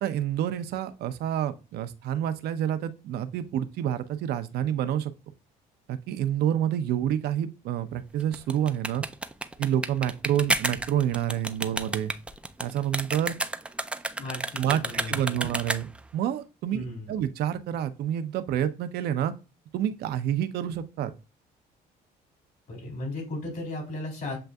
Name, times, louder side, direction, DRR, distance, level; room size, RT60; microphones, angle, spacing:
voice 1, 0.0-5.1 5.9-9.0 9.6-12.1 12.6-13.3 14.6-19.3 19.7-21.1, right 10 dB, 70° right, 0.6 m, -28 dB
sound 1, 8.2-16.1, right 2 dB, 5° right, 0.3 m, -31 dB
voice 2, 14.2-15.5 16.7-17.1 22.7-24.4, left 2 dB, 65° left, 2.6 m, -36 dB
7.7 x 2.6 x 2.3 m
cardioid pair, 110°, 17 cm